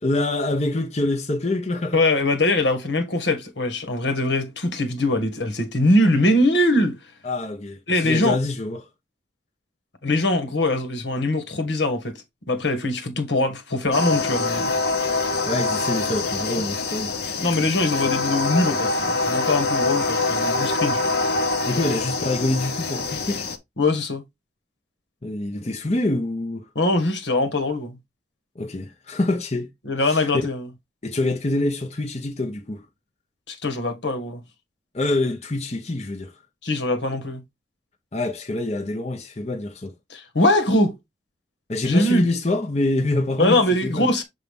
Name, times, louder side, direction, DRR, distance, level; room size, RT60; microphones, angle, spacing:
voice 1, 0.0-2.0 7.2-8.9 15.5-17.2 21.6-23.5 25.2-26.7 28.5-29.7 30.0-30.2 31.0-32.9 34.9-36.4 38.1-39.9 41.7-44.1, left 2 dB, 35° left, 0.9 m, -26 dB
voice 2, 1.9-7.0 7.9-8.4 10.0-14.7 17.4-21.0 23.8-24.2 26.7-28.0 29.8-30.7 33.5-34.4 36.6-37.4 40.1-41.0 41.8-42.3 43.4-44.2, left 1 dB, 75° left, 1.7 m, -22 dB
sound 1, 13.9-23.6, left 3 dB, 60° left, 1.1 m, -24 dB
7.4 x 4.1 x 3.6 m
head